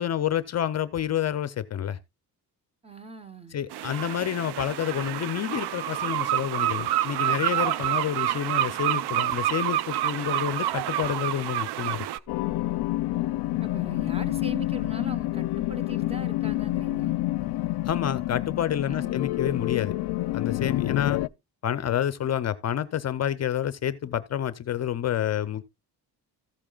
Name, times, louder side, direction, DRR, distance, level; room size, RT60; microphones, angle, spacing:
voice 1, 0.0-2.0 3.5-12.1 17.8-19.9 20.3-21.2 21.6-25.6, left 10 dB, 45° left, 0.6 m, -28 dB
voice 2, 2.8-3.6 13.6-17.2 18.8-19.2, right 2 dB, 15° right, 0.9 m, -41 dB
sound 1, 3.7-12.2, right 13 dB, 85° right, 0.6 m, -28 dB
sound 2, 12.3-21.3, left 17 dB, 90° left, 0.5 m, -28 dB
14.5 x 8.8 x 2.3 m
cardioid pair, 140°, 38 cm